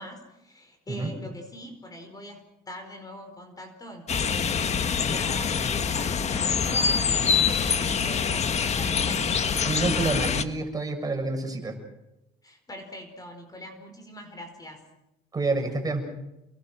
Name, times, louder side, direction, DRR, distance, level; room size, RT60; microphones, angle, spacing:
voice 1, 0.0-9.3 12.4-14.8, equal, 20° left, 6 dB, 4.9 m, -43 dB
sound 1, 4.1-10.4, left 6 dB, 40° left, 1.6 m, -25 dB
voice 2, 9.7-11.8 15.3-16.1, right 3 dB, 20° right, 3 dB, 7.0 m, -28 dB
29.5 x 22.0 x 6.3 m, 0.89 s
cardioid pair, 110°, 17 cm